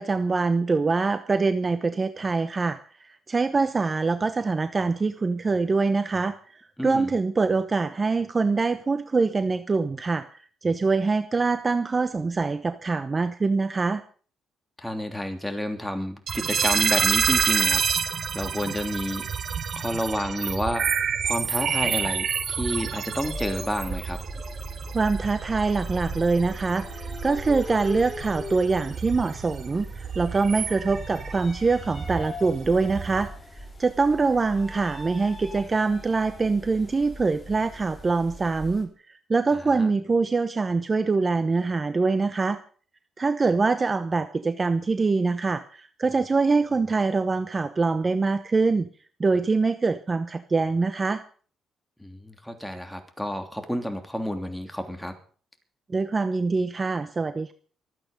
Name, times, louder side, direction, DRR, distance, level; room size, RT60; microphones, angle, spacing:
voice 1, 0.0-14.0 24.9-42.6 43.2-48.9 49.2-51.2 55.9-57.5, right 4 dB, 30° right, 11 dB, 0.9 m, -24 dB
voice 2, 6.8-7.1 14.8-17.8 18.3-19.3 19.8-20.9 21.2-24.2 39.5-39.9 52.0-55.2, equal, 5° left, 5 dB, 3.1 m, -30 dB
sound 1, 16.3-33.3, right 7 dB, 55° right, 1.7 m, -29 dB
sound 2, 23.2-38.8, equal, 20° left, 4.3 m, -39 dB
24.0 x 8.8 x 5.3 m, 0.44 s
cardioid pair, 90°, 0 cm